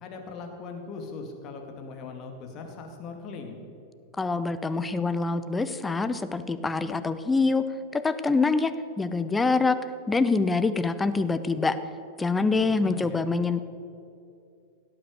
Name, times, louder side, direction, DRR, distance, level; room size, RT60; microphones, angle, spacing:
voice 1, 0.0-3.6 12.8-13.3, left 4 dB, 35° left, 3 dB, 2.4 m, -40 dB
voice 2, 4.2-7.6 7.9-8.7 9.0-9.8 10.1-11.8 12.2-13.7, left 3 dB, 10° left, 11 dB, 0.8 m, -25 dB
17.5 x 8.9 x 6.5 m, 2.6 s
figure-of-eight pair, 90°, 0 cm